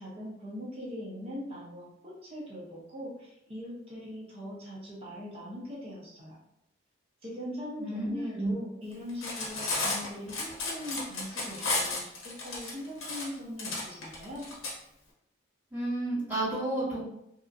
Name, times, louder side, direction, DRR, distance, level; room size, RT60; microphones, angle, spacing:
voice 1, 0.0-6.4 7.2-14.5, left 1 dB, 30° right, -5 dB, 0.6 m, -41 dB
voice 2, 7.8-8.5 15.7-17.0, right 1 dB, 10° right, -12 dB, 1.5 m, -31 dB
Cutlery silverware, 9.1-14.7, left 3 dB, 70° left, 0.8 m, -33 dB
2.8 x 2.4 x 2.4 m, 0.80 s
head